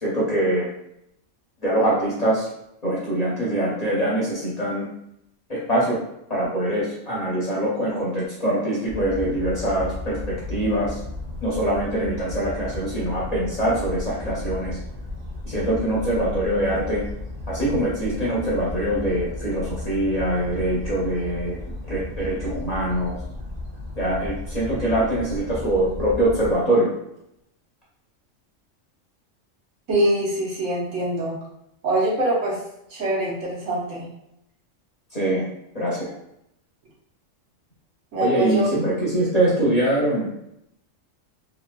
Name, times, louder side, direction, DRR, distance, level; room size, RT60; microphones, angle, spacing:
voice 1, 0.0-0.7 1.6-2.5 2.8-4.9 5.5-6.0 6.3-11.0 11.4-14.8 15.4-17.0 17.5-21.6 21.9-23.2 24.0-26.9 35.1-35.5 35.7-36.1 38.2-40.3, right 1 dB, 40° left, -7 dB, 0.7 m, -23 dB
sound 1, 8.9-26.5, left 2 dB, 45° right, 0.8 m, -34 dB
voice 2, 29.9-31.4 31.8-32.6 32.9-34.1 38.1-38.7, right 1 dB, 70° right, -5 dB, 1.2 m, -23 dB
3.0 x 2.7 x 2.2 m, 0.79 s
omnidirectional pair, 1.3 m